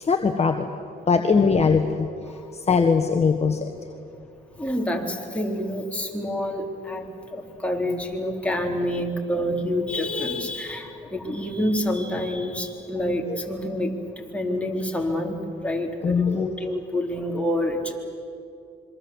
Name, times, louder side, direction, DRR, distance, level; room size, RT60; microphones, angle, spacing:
voice 1, 0.1-0.7 1.1-2.1 2.7-3.6 16.0-16.5, left 5 dB, 35° left, 5 dB, 1.6 m, -20 dB
voice 2, 4.6-17.9, left 1 dB, 5° left, 0 dB, 4.1 m, -27 dB
26.5 x 24.0 x 8.1 m, 2.5 s
cardioid pair, 90°, 20 cm